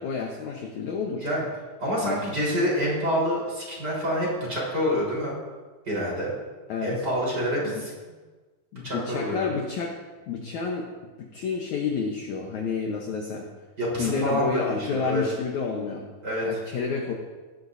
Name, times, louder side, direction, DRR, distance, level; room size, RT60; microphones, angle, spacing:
voice 1, 0.0-1.3 2.0-2.2 6.7-7.1 7.6-7.9 8.7-9.9 10.3-10.9 11.2-13.5 14.0-16.0 16.4-17.1, left 5 dB, 70° left, 1 dB, 1.9 m, -30 dB
voice 2, 1.8-5.4 5.9-6.3 6.8-7.9 8.8-9.4 13.8-15.2 16.2-16.5, equal, 25° right, -5 dB, 4.5 m, -27 dB
18.0 x 12.5 x 2.7 m, 1.3 s
omnidirectional pair, 4.5 m